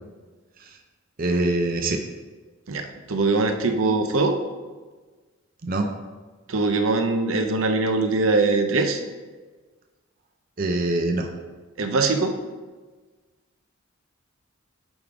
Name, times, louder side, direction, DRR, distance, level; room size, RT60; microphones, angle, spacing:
voice 1, 1.2-2.0 5.6-5.9 10.6-11.3, right 2 dB, 45° right, 3 dB, 0.5 m, -24 dB
voice 2, 2.7-4.4 6.5-9.0 11.8-12.4, right 3 dB, 80° right, 5 dB, 0.7 m, -22 dB
8.7 x 3.7 x 4.7 m, 1.3 s
head